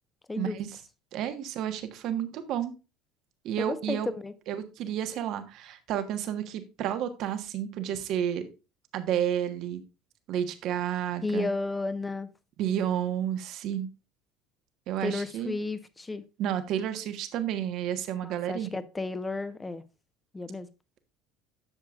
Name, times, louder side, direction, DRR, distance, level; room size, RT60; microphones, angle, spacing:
voice 1, 0.4-0.7 1.1-2.7 3.4-4.1 4.5-8.5 8.9-9.8 10.3-11.5 12.6-13.9 14.9-15.5 16.4-18.8, right 10 dB, 60° right, 1.5 m, -31 dB
voice 2, 3.6-4.3 11.2-12.3 15.0-16.2 18.2-19.8 20.3-20.7, left 3 dB, 15° left, 1.2 m, -33 dB
10.5 x 7.3 x 2.5 m
hypercardioid pair, 70°, 0 cm